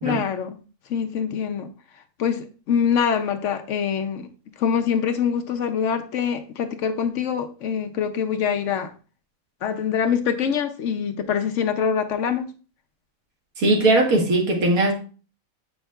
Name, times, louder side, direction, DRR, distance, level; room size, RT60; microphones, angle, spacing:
voice 1, 0.0-0.6 0.9-1.7 2.2-4.3 4.6-8.9 9.6-12.5, left 7 dB, 65° left, 0.9 m, -24 dB
voice 2, 13.6-14.9, right 2 dB, 80° right, 1.7 m, -19 dB
7.7 x 5.4 x 2.3 m
omnidirectional pair, 1.5 m